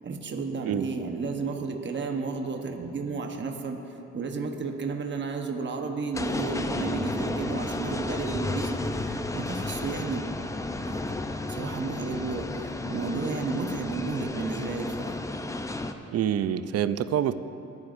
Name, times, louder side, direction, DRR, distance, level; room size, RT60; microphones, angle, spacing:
voice 1, 0.0-11.2 11.5-15.2, right 4 dB, 40° right, 4 dB, 1.1 m, -33 dB
sound 1, 6.1-15.9, left 2 dB, 10° left, 0.5 m, -32 dB
voice 2, 16.1-17.3, right 10 dB, 55° right, 13 dB, 0.5 m, -26 dB
26.0 x 9.4 x 2.6 m, 2.9 s
cardioid pair, 90°, 30 cm